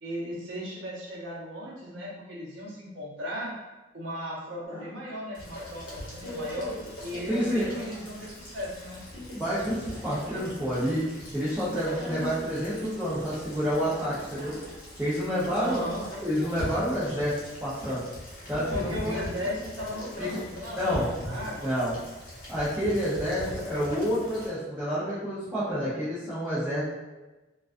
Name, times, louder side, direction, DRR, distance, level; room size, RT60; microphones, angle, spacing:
voice 1, 0.0-3.5 3.9-6.7 7.0-9.0 15.5-16.0 18.7-21.7, equal, 85° right, -5 dB, 0.7 m, -36 dB
sound 1, 4.7-5.1 6.2-8.1 9.1-10.7 12.0-14.8 15.4-17.5 18.5-21.7, equal, 40° right, 0.9 m, -42 dB
Rain, 5.3-24.5, left 1 dB, 50° left, 0.8 m, -41 dB
voice 2, 7.3-7.7 9.3-11.0 11.3-14.6 15.0-15.8 16.2-17.3 17.6-18.0 18.5-19.2 20.2-20.4 20.7-21.1 21.6-22.0 22.5-26.8, equal, 10° right, -12 dB, 0.5 m, -29 dB
2.3 x 2.2 x 2.4 m, 1.1 s
head